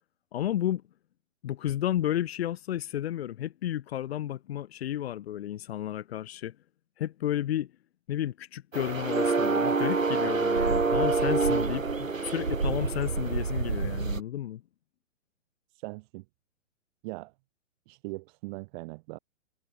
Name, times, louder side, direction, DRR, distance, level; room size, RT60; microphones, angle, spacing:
voice 1, 0.3-0.8 1.4-6.5 7.0-7.7 8.1-14.6, left 12 dB, 50° left, 5.8 m, -32 dB
sound 1, 8.7-14.2, right 4 dB, 85° right, 3.6 m, -27 dB
voice 2, 15.7-16.2 17.0-17.3 17.9-19.2, right 25 dB, 35° right, 7.9 m, -40 dB
figure-of-eight pair, 125°, 39 cm